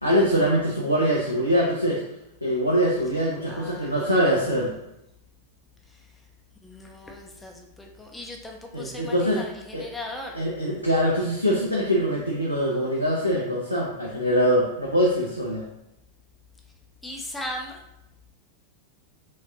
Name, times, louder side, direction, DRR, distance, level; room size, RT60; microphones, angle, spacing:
voice 1, 0.0-2.0 2.4-4.7 8.7-9.4 9.7-9.9 10.3-15.7, equal, 90° right, -4 dB, 0.6 m, -23 dB
voice 2, 3.5-4.4 5.9-6.0 6.6-10.4 17.0-17.8, left 1 dB, 5° left, 1 dB, 0.5 m, -38 dB
4.5 x 2.5 x 2.8 m, 0.85 s
figure-of-eight pair, 90°, 0 cm